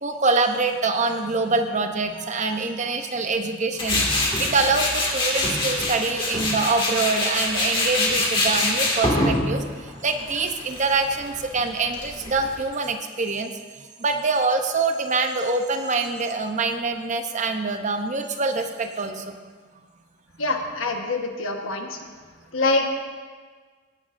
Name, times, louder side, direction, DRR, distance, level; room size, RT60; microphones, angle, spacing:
voice 1, 0.0-9.6 10.0-13.5 14.0-19.3, right 3 dB, 35° right, 6 dB, 0.7 m, -25 dB
Tools, 3.8-12.6, left 2 dB, 25° left, 2.1 m, -25 dB
voice 2, 20.4-22.0 22.5-23.0, left 2 dB, 85° left, 3 dB, 1.3 m, -25 dB
17.5 x 10.0 x 2.6 m, 1.5 s
head